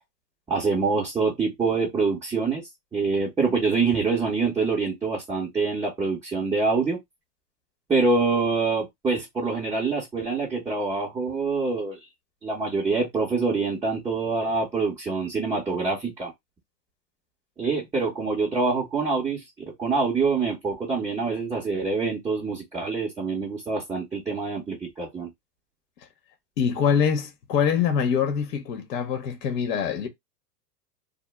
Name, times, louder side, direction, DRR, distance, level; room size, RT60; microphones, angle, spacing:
voice 1, 0.5-2.6 2.9-7.0 7.9-12.0 12.4-16.3 17.6-19.4 19.8-25.3, right 4 dB, 5° right, 0.4 m, -25 dB
voice 2, 26.6-30.1, left 7 dB, 70° left, 0.8 m, -24 dB
2.0 x 2.0 x 3.1 m
hypercardioid pair, 115°, 49 cm